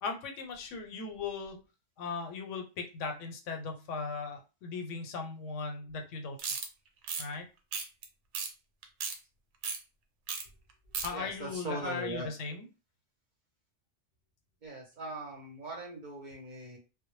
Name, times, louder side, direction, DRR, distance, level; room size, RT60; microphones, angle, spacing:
voice 1, 0.0-1.6 2.0-6.4 7.2-7.4 11.0-12.7, left 4 dB, 90° left, 4 dB, 1.0 m, -38 dB
sound 1, 6.4-6.7 7.0-7.2 7.7-8.0 8.3-8.5 8.8-9.2 9.6-9.8 10.3-10.4 10.7-11.1, right 5 dB, 80° right, 0.9 m, -35 dB
voice 2, 11.1-12.3 14.6-16.8, right 2 dB, 50° right, 0 dB, 0.7 m, -40 dB
2.0 x 2.0 x 3.0 m, 0.30 s
omnidirectional pair, 1.2 m